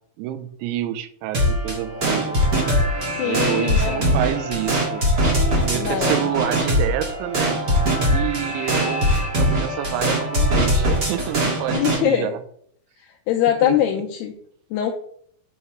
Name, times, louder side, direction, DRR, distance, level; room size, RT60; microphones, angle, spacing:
voice 1, 0.2-2.4 3.2-5.0 5.6-7.6 8.1-12.4 13.6-13.8, right 12 dB, 90° right, 11 dB, 2.9 m, -28 dB
sound 1, 1.3-12.0, equal, 60° right, 1.1 m, -21 dB
voice 2, 3.2-4.0 5.7-6.2 11.7-12.3 13.3-14.3 14.7-14.9, left 10 dB, 80° left, 2 dB, 2.4 m, -22 dB
9.1 x 5.6 x 3.0 m, 0.62 s
omnidirectional pair, 5.2 m